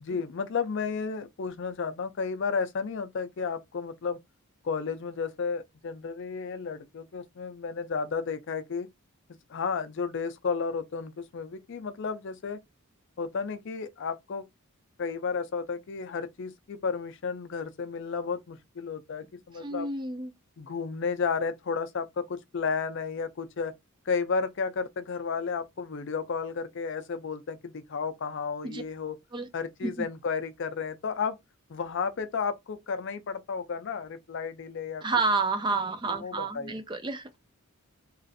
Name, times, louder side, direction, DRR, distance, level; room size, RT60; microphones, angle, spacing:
voice 1, 0.0-4.2 4.6-8.9 9.5-12.6 13.2-14.5 15.0-19.9 20.6-23.7 24.1-29.2 29.5-31.4 31.7-35.0 36.1-36.8, left 5 dB, 55° left, 0.4 m, -32 dB
voice 2, 19.6-20.3 28.6-28.8 29.3-29.5 29.8-30.1 35.0-37.4, right 3 dB, 20° right, 0.4 m, -30 dB
3.0 x 2.5 x 2.5 m
head